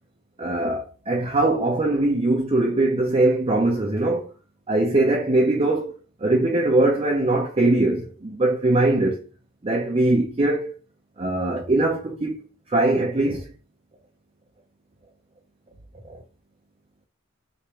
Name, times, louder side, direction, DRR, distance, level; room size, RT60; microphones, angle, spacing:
voice 1, 0.4-4.3 4.7-5.9 6.2-9.2 9.6-10.7 11.2-13.5, right 2 dB, 30° right, 0.6 m, -21 dB
3.0 x 2.6 x 4.3 m
head